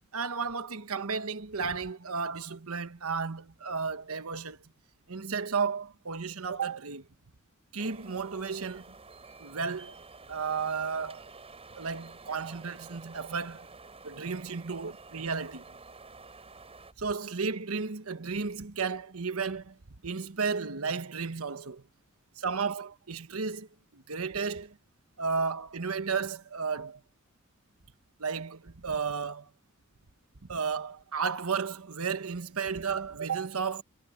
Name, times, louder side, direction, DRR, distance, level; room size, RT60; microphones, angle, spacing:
voice 1, 0.1-4.6 5.1-7.0 7.7-8.9 9.4-10.0 10.3-11.2 11.8-13.7 14.0-15.7 17.0-19.8 20.0-21.8 22.4-23.7 23.9-24.8 25.2-27.0 28.2-29.5 30.5-33.8, right 5 dB, 85° right, 1.2 m, -33 dB
sound 1, 7.8-16.9, right 3 dB, 30° right, 5.3 m, -50 dB
head